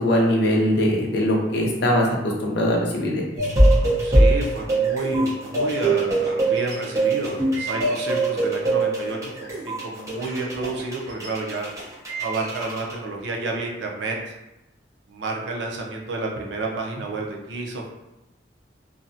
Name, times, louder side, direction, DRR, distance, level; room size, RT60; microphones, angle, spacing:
voice 1, 0.0-3.2, left 1 dB, 65° left, -1 dB, 0.6 m, -21 dB
sound 1, 3.4-12.9, right 2 dB, 20° right, 0.7 m, -22 dB
voice 2, 4.0-11.7 12.1-14.2 15.1-17.9, right 3 dB, 70° right, -1 dB, 0.5 m, -30 dB
2.5 x 2.0 x 2.6 m, 0.93 s
head